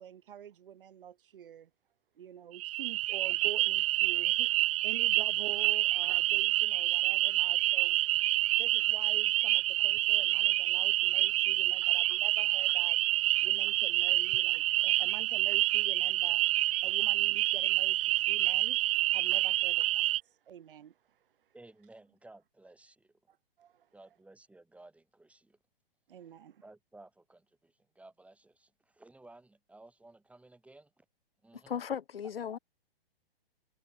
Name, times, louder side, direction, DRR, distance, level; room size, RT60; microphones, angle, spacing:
voice 1, 0.0-1.7 2.2-4.5 4.8-8.0 8.5-13.0 13.4-16.4 16.8-18.8 19.1-21.5 23.3-23.9 26.1-26.6, right 9 dB, 65° right, 1.1 m, -48 dB
sound 1, 2.5-20.2, right 17 dB, 35° right, 0.5 m, -28 dB
voice 2, 21.5-23.2 23.9-25.6 26.6-31.0 31.4-31.8, right 2 dB, 5° right, 2.9 m, -56 dB
voice 3, 31.7-32.6, left 8 dB, 80° left, 0.7 m, -36 dB
figure-of-eight pair, 120°, 29 cm